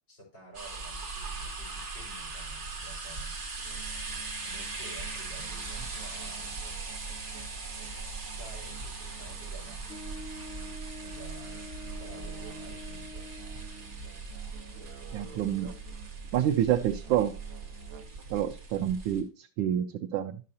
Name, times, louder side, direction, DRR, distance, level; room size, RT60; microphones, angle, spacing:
voice 1, 0.1-3.3 4.4-6.6 8.1-9.8 11.0-11.6 12.0-13.1, right 2 dB, 65° left, -2 dB, 4.8 m, -51 dB
sound 1, 0.5-19.2, right 3 dB, 40° right, 1.9 m, -40 dB
Musical instrument, 3.6-18.3, right 8 dB, 60° right, 0.9 m, -50 dB
Wind instrument woodwind instrument, 9.9-14.0, left 1 dB, 35° left, 2.9 m, -46 dB
voice 2, 15.1-15.7 16.3-17.3 18.3-20.4, right 10 dB, 85° right, 2 dB, 1.3 m, -28 dB
11.5 x 6.6 x 2.7 m, 0.35 s
omnidirectional pair, 2.1 m